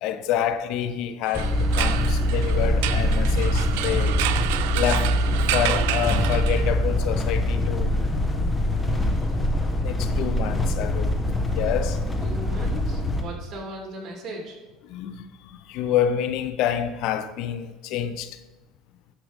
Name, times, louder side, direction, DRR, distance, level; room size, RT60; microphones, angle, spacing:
voice 1, 0.0-4.2 4.7-5.2 5.5-8.0 9.8-11.1 11.5-12.0 14.8-18.4, left 9 dB, 65° left, 0.6 m, -28 dB
sound 1, 1.2-6.9, right 14 dB, 85° right, 0.5 m, -30 dB
sound 2, 1.3-13.2, left 1 dB, 15° left, 1.3 m, -23 dB
voice 2, 12.2-14.6, right 1 dB, 40° right, 2.9 m, -37 dB
12.0 x 4.9 x 5.2 m
supercardioid pair, 105°, 0 cm